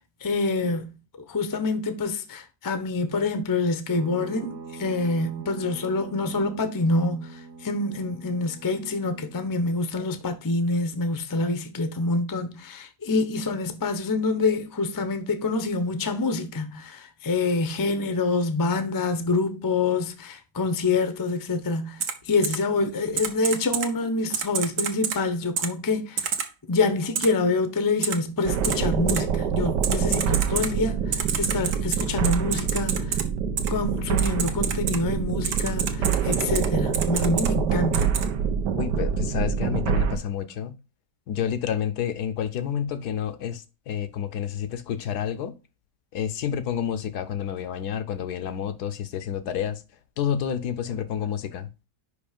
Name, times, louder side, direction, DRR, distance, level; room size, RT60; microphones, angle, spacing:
voice 1, 0.2-0.9 1.3-26.3 26.7-33.2 33.7-38.1, left 3 dB, 20° left, 0.5 m, -26 dB
sound 1, 3.9-9.7, right 4 dB, 45° right, 1.1 m, -43 dB
Typing, 22.0-22.1 22.4-22.6 23.2-23.9 24.3-25.2 25.6-25.7 26.2-26.5 27.1-27.3 28.0-28.1 28.6-28.8 29.1-29.2 29.8-30.7 31.1-33.2 33.6-33.7 34.2-35.0 35.4-36.7 36.9-37.5 37.9-38.2, right 7 dB, 70° right, 1.4 m, -27 dB
sound 2, 28.5-40.2, right 7 dB, 85° right, 1.4 m, -26 dB
voice 2, 38.8-40.7 41.3-45.5 46.1-49.8 50.2-51.7, left 9 dB, 75° left, 1.3 m, -29 dB
5.3 x 5.1 x 5.1 m
omnidirectional pair, 1.7 m